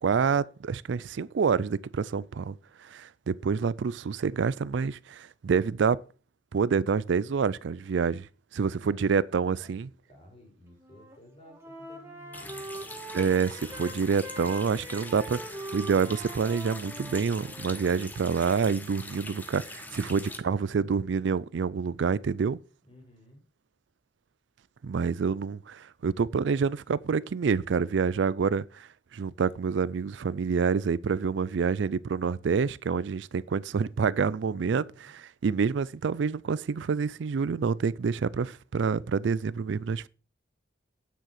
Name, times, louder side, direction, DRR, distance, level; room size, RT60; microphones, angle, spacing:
voice 1, 0.0-2.6 2.8-6.0 6.5-8.3 8.5-9.9 13.1-22.6 24.8-35.1 35.4-40.1, right 5 dB, 70° right, 0.4 m, -27 dB
voice 2, 8.9-12.6 22.8-23.4 34.8-35.1, equal, 30° left, 4.5 m, -55 dB
Wind instrument woodwind instrument, 10.7-11.2 11.5-18.0, right 1 dB, 15° right, 2.4 m, -43 dB
Water tap faucet, 12.3-20.4, left 2 dB, 10° left, 1.1 m, -43 dB
9.3 x 7.4 x 5.9 m
head